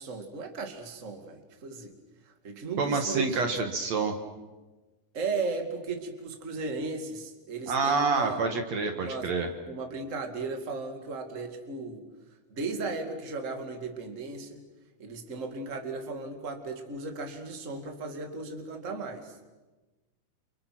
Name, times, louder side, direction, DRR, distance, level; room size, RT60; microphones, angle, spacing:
voice 1, 0.0-1.9 2.4-3.6 5.1-8.5 8.9-9.3 9.7-12.0 12.5-14.6 15.0-19.3, right 3 dB, 25° right, 5 dB, 2.4 m, -36 dB
voice 2, 2.8-4.2 7.7-9.5, right 4 dB, 60° right, 5 dB, 2.7 m, -27 dB
29.5 x 29.0 x 6.1 m, 1.2 s
omnidirectional pair, 3.7 m